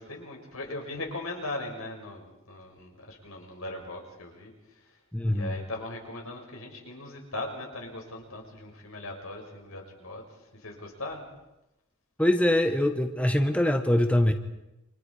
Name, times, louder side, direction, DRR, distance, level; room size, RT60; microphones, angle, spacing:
voice 1, 0.0-4.9 5.3-10.2 10.5-11.2, left 2 dB, 80° left, 1 dB, 6.7 m, -39 dB
voice 2, 5.1-5.5 12.2-14.3, left 1 dB, 5° left, 6 dB, 1.2 m, -23 dB
29.0 x 26.5 x 5.0 m, 0.95 s
head